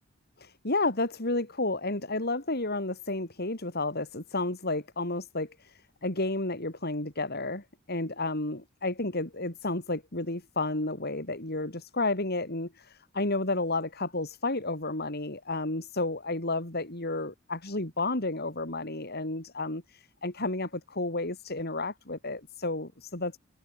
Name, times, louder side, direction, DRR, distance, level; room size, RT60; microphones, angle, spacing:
voice 1, 0.4-23.4, left 2 dB, 50° left, 4.2 m, -31 dB
head